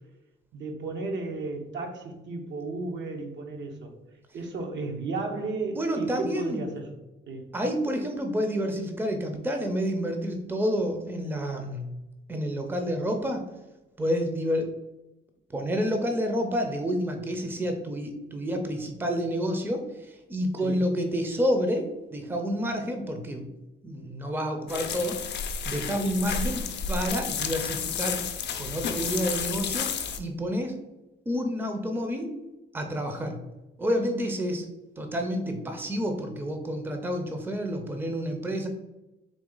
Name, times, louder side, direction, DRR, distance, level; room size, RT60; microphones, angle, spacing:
voice 1, 0.5-3.9 4.3-7.0 7.3-7.5 20.6-20.9, right 3 dB, 65° right, 3 dB, 0.9 m, -34 dB
voice 2, 5.8-6.6 7.5-12.0 12.3-13.4 14.0-14.7 15.5-23.5 23.8-25.2 25.7-28.2 28.6-29.9 30.2-30.8 31.3-32.3 32.7-33.4 33.8-34.7 35.0-38.7, equal, 10° right, 4 dB, 0.6 m, -29 dB
sound 1, 24.7-30.2, left 6 dB, 60° left, 0.5 m, -31 dB
4.0 x 2.8 x 3.8 m, 1.0 s
cardioid pair, 90°, 20 cm